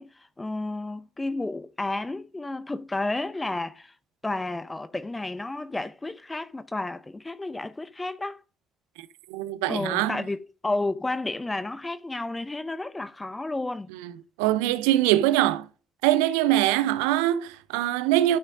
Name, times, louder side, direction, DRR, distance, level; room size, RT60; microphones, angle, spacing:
voice 1, 0.0-3.9 4.2-8.4 9.7-13.9, left 2 dB, 20° left, 0.6 m, -31 dB
voice 2, 9.3-10.2 13.9-14.1 14.4-15.7 16.0-18.4, right 14 dB, 75° right, 0.5 m, -23 dB
12.0 x 6.2 x 2.6 m
figure-of-eight pair, 45°, 0 cm